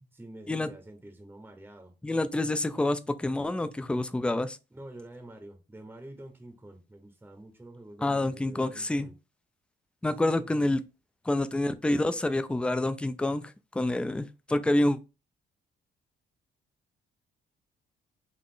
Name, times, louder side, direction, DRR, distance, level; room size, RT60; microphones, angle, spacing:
voice 1, 0.0-1.9 4.7-9.1 10.2-10.6, right 1 dB, 10° right, 0.8 m, -47 dB
voice 2, 2.0-4.6 8.0-9.1 10.0-10.8 11.3-13.4 13.7-15.0, left 1 dB, 5° left, 0.3 m, -27 dB
3.8 x 2.4 x 3.7 m
cardioid pair, 90°, 20 cm